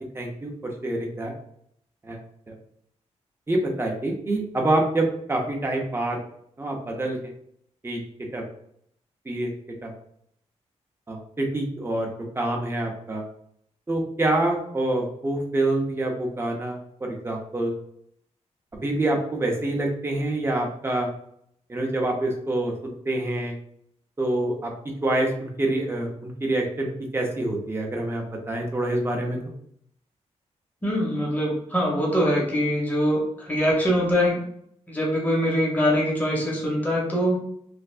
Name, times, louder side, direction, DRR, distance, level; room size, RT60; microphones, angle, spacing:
voice 1, 0.1-1.3 2.0-2.2 2.5-2.6 3.5-6.2 6.6-7.2 7.8-8.0 8.3-8.5 9.3-9.5 9.8-9.9 11.1-12.1 12.4-13.2 13.9-17.8 18.8-21.1 21.7-22.7 23.1-23.6 24.2-24.7 25.0-29.4, right 1 dB, 20° right, 0 dB, 0.6 m, -26 dB
voice 2, 30.8-34.4 34.9-37.4, equal, 15° left, -3 dB, 0.9 m, -23 dB
3.2 x 2.5 x 2.5 m, 0.70 s
wide cardioid pair, 135°, 12 cm